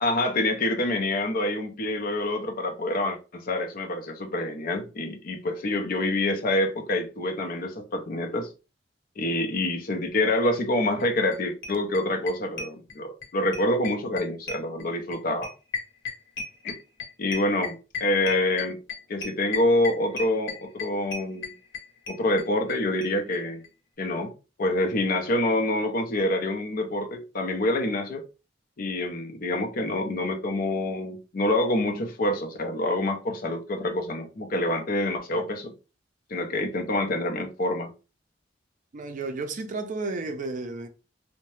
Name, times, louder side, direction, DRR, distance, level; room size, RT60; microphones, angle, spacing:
voice 1, 0.0-8.5 9.2-15.5 16.6-16.8 17.2-18.8 19.1-21.5 22.1-23.6 24.0-24.3 24.6-28.2 28.8-35.7 36.3-37.9, left 1 dB, 50° left, 0.6 m, -26 dB
sound 1, 11.0-11.1 11.3-11.4 11.6-13.3 13.5-22.8 23.0-23.1 23.3-23.4 23.6-23.7, left 4 dB, 85° left, 0.9 m, -34 dB
voice 2, 38.9-40.9, right 3 dB, 45° right, 0.4 m, -32 dB
2.7 x 2.1 x 3.1 m
head